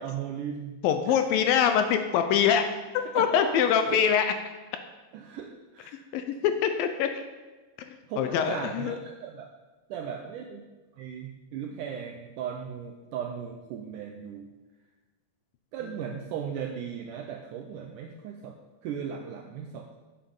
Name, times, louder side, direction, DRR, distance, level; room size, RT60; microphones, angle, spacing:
voice 1, 0.0-1.2 3.0-4.1 5.1-6.0 8.1-9.5 9.9-10.6 10.9-14.5 15.7-18.5 18.8-20.0, right 8 dB, 80° right, 3 dB, 1.9 m, -37 dB
voice 2, 0.8-2.7 3.1-4.3 6.1-7.1 7.8-9.0, left 8 dB, 75° left, 7 dB, 2.2 m, -24 dB
9.1 x 7.4 x 7.1 m, 1.2 s
omnidirectional pair, 4.5 m